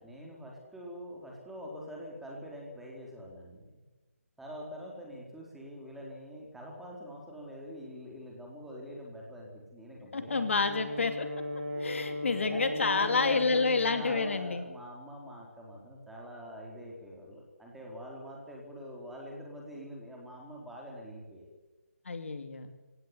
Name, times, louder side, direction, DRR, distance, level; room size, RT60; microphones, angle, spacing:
voice 1, 0.0-3.8 4.4-10.3 11.7-12.0 12.5-21.5, equal, 5° right, -2 dB, 4.3 m, -45 dB
voice 2, 10.1-11.3 11.8-14.6 22.1-22.7, left 4 dB, 60° left, 8 dB, 2.7 m, -29 dB
Brass instrument, 10.3-14.4, left 1 dB, 35° right, 6.4 m, -37 dB
24.5 x 17.5 x 9.9 m, 1.2 s
figure-of-eight pair, 160°, 8 cm